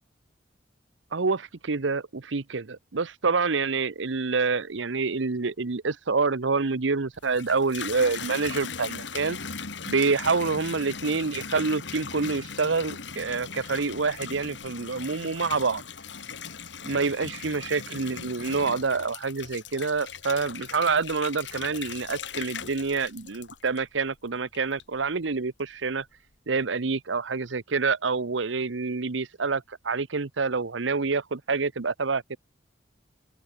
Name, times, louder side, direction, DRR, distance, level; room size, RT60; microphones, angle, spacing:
voice 1, 1.1-9.4 9.9-15.8 16.9-26.0 26.5-32.4, right 4 dB, 85° right, 0.9 m, -27 dB
Water tap faucet / Bathtub (filling or washing), 7.1-24.1 24.5-25.1, left 6 dB, 75° left, 2.4 m, -39 dB
open air
head